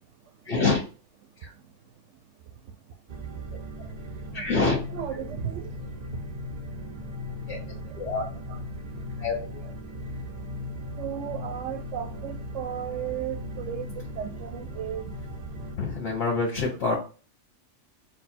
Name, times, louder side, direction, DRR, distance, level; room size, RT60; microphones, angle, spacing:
voice 1, 0.4-0.8 1.4-1.5 4.3-4.8 5.1-5.2 7.5-7.6 7.9-8.3 9.2-9.3 15.8-17.0, left 3 dB, 60° left, 1.2 m, -26 dB
sound 1, 3.1-15.8, equal, 50° right, 0.5 m, -38 dB
voice 2, 4.9-5.7 7.9-8.0 8.5-8.6 11.0-15.1, right 9 dB, 75° right, 0.9 m, -35 dB
4.2 x 2.3 x 4.3 m
omnidirectional pair, 1.3 m